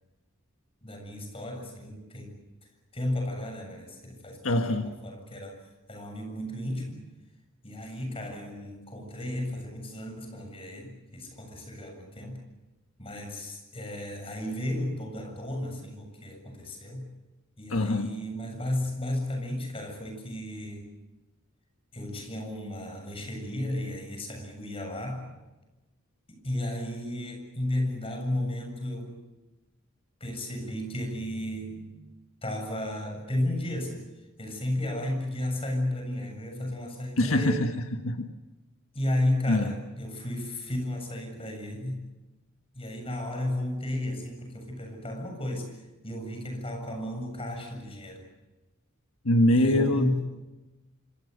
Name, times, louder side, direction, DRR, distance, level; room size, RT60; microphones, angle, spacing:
voice 1, 0.8-2.4 2.9-5.6 5.9-7.0 7.6-12.4 13.0-17.1 17.6-20.9 21.9-25.3 26.3-29.2 30.2-31.9 32.4-34.1 34.4-37.7 38.9-42.1 42.7-45.7 46.0-48.3 49.5-50.2, left 1 dB, 25° left, 4 dB, 7.4 m, -33 dB
voice 2, 4.4-4.9 17.7-18.1 37.2-38.3 39.5-39.7 49.2-50.2, left 1 dB, 80° left, 5 dB, 1.6 m, -24 dB
27.0 x 26.0 x 6.8 m, 1.1 s
head